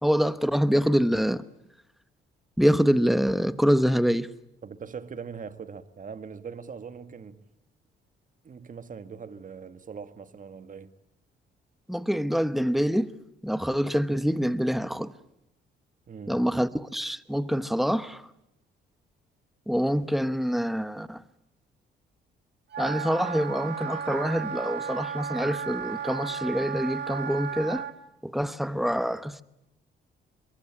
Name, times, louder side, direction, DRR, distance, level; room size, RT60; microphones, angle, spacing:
voice 1, 0.0-1.4 2.6-4.3 11.9-13.1 13.4-15.1 16.3-18.2 19.7-21.2 22.8-27.9 28.2-29.4, equal, ahead, 1.1 m, -25 dB
voice 2, 4.6-7.4 8.4-10.9 16.1-16.4, right 6 dB, 40° right, 1.7 m, -41 dB
Wind instrument woodwind instrument, 22.7-27.9, right 7 dB, 60° right, 2.1 m, -34 dB
23.5 x 23.0 x 9.9 m
cardioid pair, 90°, 20 cm